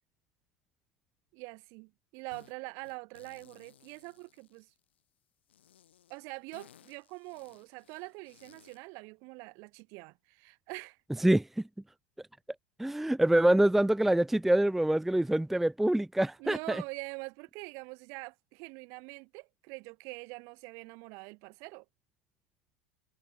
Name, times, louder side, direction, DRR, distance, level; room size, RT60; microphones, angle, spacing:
voice 1, 1.3-4.7 6.1-11.0 16.4-21.8, right 30 dB, 55° right, 4.2 m, -44 dB
sound 1, 2.3-2.5 2.8-5.0 5.5-8.9, left 10 dB, 80° left, 6.0 m, -60 dB
voice 2, 11.2-11.6 12.8-16.8, right 1 dB, 5° right, 0.4 m, -25 dB
hypercardioid pair, 95°, 6 cm